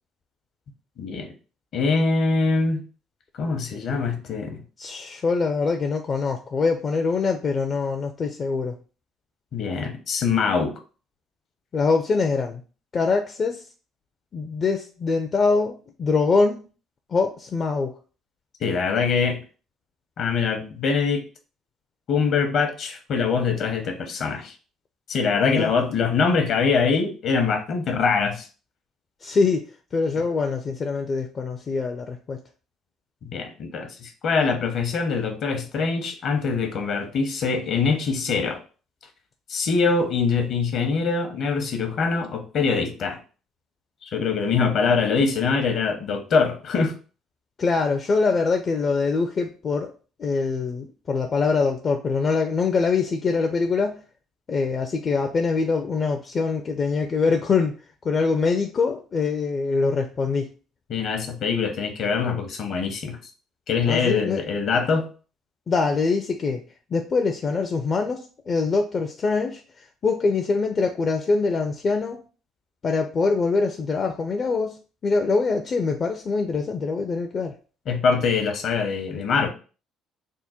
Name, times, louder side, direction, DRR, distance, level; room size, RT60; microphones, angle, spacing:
voice 1, 1.0-1.3 1.7-2.8 3.3-4.6 9.5-10.8 18.6-19.4 20.2-21.2 22.1-24.5 25.1-28.5 33.2-38.6 39.5-43.2 44.0-46.9 60.9-63.2 63.7-65.0 77.9-79.5, left 5 dB, 60° left, 6 dB, 0.9 m, -23 dB
voice 2, 4.8-8.8 11.7-12.6 12.9-13.6 14.3-16.6 17.1-17.9 25.4-25.7 29.2-29.7 29.9-32.4 47.6-49.9 50.2-54.0 54.5-57.8 58.0-60.5 63.9-64.4 65.7-66.6 66.9-72.2 72.8-77.6, left 4 dB, 45° left, 4 dB, 0.5 m, -24 dB
3.6 x 2.2 x 4.3 m, 0.36 s
hypercardioid pair, 60°, 0 cm